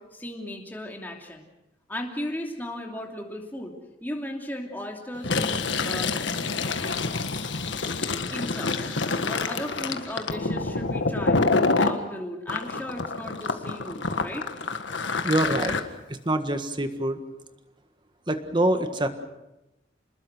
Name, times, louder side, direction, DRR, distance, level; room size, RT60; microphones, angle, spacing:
voice 1, 0.0-1.5 1.9-3.7 4.0-6.1 8.3-8.8 9.2-11.4 11.8-14.5, left 1 dB, 10° left, 1 dB, 2.9 m, -36 dB
Fill (with liquid), 5.2-12.0 12.5-15.8, left 3 dB, 85° left, 1.6 m, -27 dB
voice 2, 15.2-15.8 16.1-17.2 18.3-19.1, right 1 dB, 25° right, 8 dB, 1.7 m, -25 dB
28.0 x 20.5 x 6.3 m, 0.98 s
head